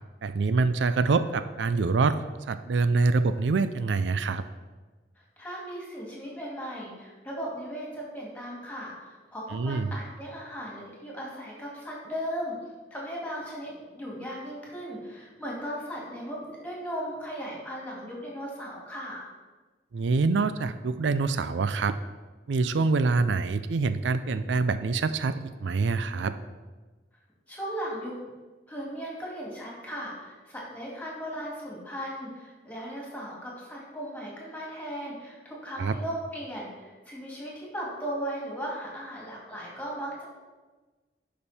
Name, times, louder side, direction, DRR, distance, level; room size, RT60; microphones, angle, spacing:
voice 1, 0.2-2.1 2.5-4.4 9.5-9.9 19.9-22.0 22.5-26.3 35.8-36.0, right 4 dB, 90° right, 12 dB, 0.4 m, -25 dB
voice 2, 5.4-12.6 12.9-19.3 27.5-28.1 28.7-40.2, equal, 10° left, -3 dB, 2.4 m, -37 dB
11.5 x 5.2 x 4.2 m, 1.3 s
head